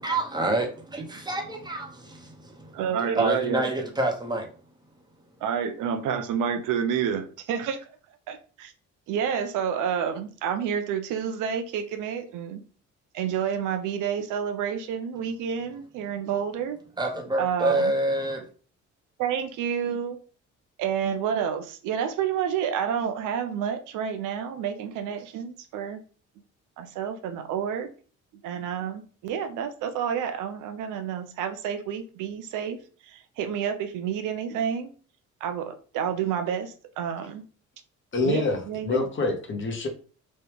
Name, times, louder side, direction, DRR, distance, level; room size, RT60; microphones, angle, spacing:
voice 1, 0.0-2.8 3.2-4.5 17.0-18.4, right 2 dB, 15° right, 0.9 m, -27 dB
voice 2, 2.7-3.6 5.4-7.8 8.3-8.7 9.1-12.6 13.1-16.8 17.4-17.9 19.2-20.2 20.8-26.0 26.8-27.9 28.4-34.9 35.4-37.4 38.2-39.0, right 8 dB, 90° right, 0.5 m, -29 dB
voice 3, 38.1-39.9, left 3 dB, 40° left, 0.9 m, -26 dB
3.1 x 2.2 x 3.4 m
cardioid pair, 90°, 30 cm